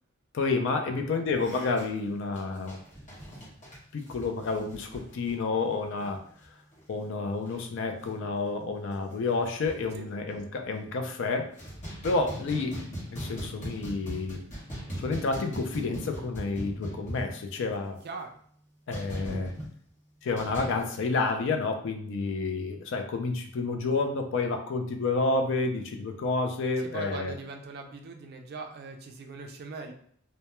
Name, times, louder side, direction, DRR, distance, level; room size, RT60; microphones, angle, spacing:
voice 1, 0.3-2.8 3.9-6.2 6.9-11.5 12.0-12.8 13.1-14.4 15.0-18.0 18.9-19.5 20.2-27.3, left 3 dB, 60° left, 5 dB, 0.3 m, -30 dB
voice 2, 0.9-1.2 9.9-10.1 18.0-18.3 26.8-29.9, right 3 dB, 45° right, 4 dB, 0.3 m, -41 dB
sound 1, 1.4-6.5 6.7-6.9 7.3-7.6 8.0-8.1 8.6-8.7 8.9-10.0 10.6-11.1 11.3-17.8 18.9-19.7 20.4-20.8, equal, 35° left, 1.0 m, -40 dB
2.2 x 2.1 x 2.9 m, 0.62 s
head